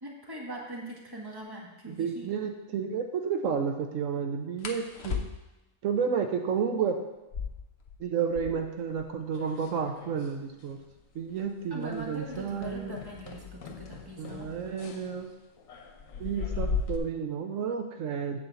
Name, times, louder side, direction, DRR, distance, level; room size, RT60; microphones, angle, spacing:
voice 1, 0.0-2.3 11.7-14.5, right 1 dB, 15° right, -2 dB, 1.5 m, -41 dB
sound 1, 1.4-1.5 1.9-2.1 4.6-5.7 7.1-8.8 9.1-9.2 9.4-10.0 10.6-13.2 14.2-14.5 14.9-15.4 15.7-16.4, left 6 dB, 55° left, 1.1 m, -40 dB
voice 2, 1.9-5.2 5.8-7.0 8.0-10.8 11.1-12.9 14.2-15.3 16.2-18.4, right 6 dB, 80° right, 5 dB, 1.1 m, -31 dB
sound 2, 8.9-10.4 10.6-11.0 11.3-11.5 11.9-17.0, left 5 dB, 85° left, 1.3 m, -38 dB
8.5 x 4.3 x 7.0 m, 1.0 s
omnidirectional pair, 1.4 m